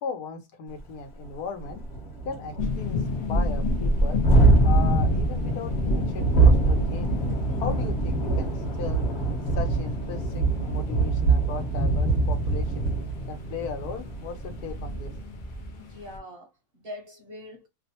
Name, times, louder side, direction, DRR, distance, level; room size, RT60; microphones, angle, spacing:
voice 1, 0.0-1.8 2.2-3.0 3.3-4.2 4.6-7.2 7.5-9.0 9.5-12.9 13.3-15.1, left 6 dB, 90° left, 1.3 m, -37 dB
Thunderstorm, 0.8-0.9 1.2-1.3 1.6-15.2, right 2 dB, 40° left, 1.0 m, -24 dB
sound 1, 2.6-16.2, left 2 dB, 75° left, 0.4 m, -32 dB
voice 2, 15.7-17.7, left 1 dB, 55° right, 0.7 m, -43 dB
2.9 x 2.1 x 2.7 m
omnidirectional pair, 1.6 m